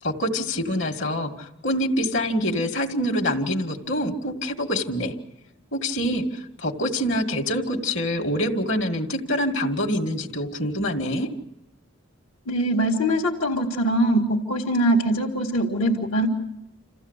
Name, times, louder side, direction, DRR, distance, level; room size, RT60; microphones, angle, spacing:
voice 1, 0.0-5.1 5.7-11.3, equal, 65° left, 5 dB, 2.2 m, -25 dB
voice 2, 12.5-16.3, right 1 dB, 80° left, -3 dB, 2.1 m, -22 dB
28.0 x 15.5 x 8.2 m, 0.88 s
head